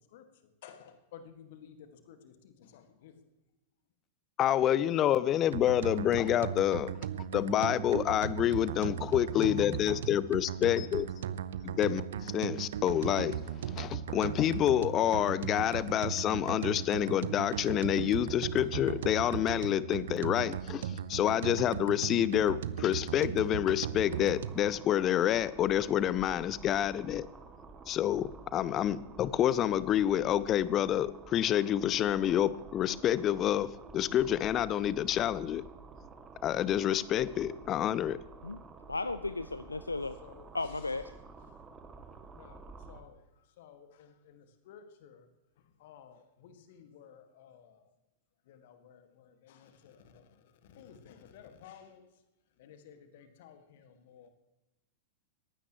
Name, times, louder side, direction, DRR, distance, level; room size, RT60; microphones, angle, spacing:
voice 1, 0.6-3.1 40.2-40.9 41.5-41.6 42.3-42.6 42.9-43.2 43.5-45.3 45.8-47.9 48.5-52.1 52.6-54.3, left 8 dB, 55° left, 8 dB, 1.9 m, -55 dB
voice 2, 4.4-6.9 7.3-11.1 11.6-13.4 13.7-20.8 21.1-27.3 27.9-35.6 36.4-38.2, left 11 dB, 30° left, 19 dB, 0.6 m, -28 dB
sound 1, 5.5-24.7, right 9 dB, 60° right, 0.6 m, -37 dB
sound 2, 24.0-43.0, right 4 dB, 20° right, 2.2 m, -51 dB
voice 3, 38.9-40.2 40.5-41.1, left 3 dB, 80° left, 14 dB, 0.4 m, -35 dB
20.5 x 15.5 x 3.1 m, 0.98 s
figure-of-eight pair, 90°, 0 cm